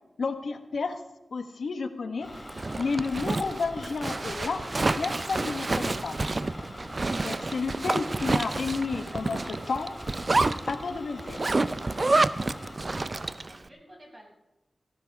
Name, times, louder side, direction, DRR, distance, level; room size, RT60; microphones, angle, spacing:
voice 1, 0.2-1.0 1.3-2.3 2.8-6.3 7.2-9.9 10.7-11.5, left 4 dB, 75° left, 8 dB, 1.2 m, -31 dB
sound 1, 2.2-12.8, left 1 dB, 25° left, 2.7 m, -45 dB
Zipper (clothing), 2.4-13.6, right 2 dB, 40° right, 0.5 m, -29 dB
voice 2, 12.8-14.3, equal, 25° right, -2 dB, 6.5 m, -51 dB
17.5 x 15.0 x 3.5 m, 0.95 s
wide cardioid pair, 65°, 0 cm